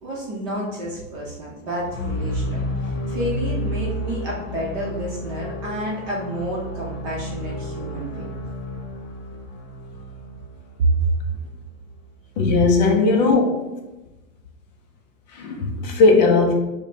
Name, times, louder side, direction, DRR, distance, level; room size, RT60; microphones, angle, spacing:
voice 1, 0.0-8.2 10.8-11.1, right 2 dB, 35° right, -4 dB, 0.7 m, -28 dB
sound 1, 1.8-11.8, equal, 65° left, 0.8 m, -31 dB
voice 2, 12.4-13.8 15.3-16.5, left 3 dB, 35° left, 2 dB, 0.4 m, -18 dB
4.8 x 2.1 x 2.7 m, 1.1 s
supercardioid pair, 170°, 40 cm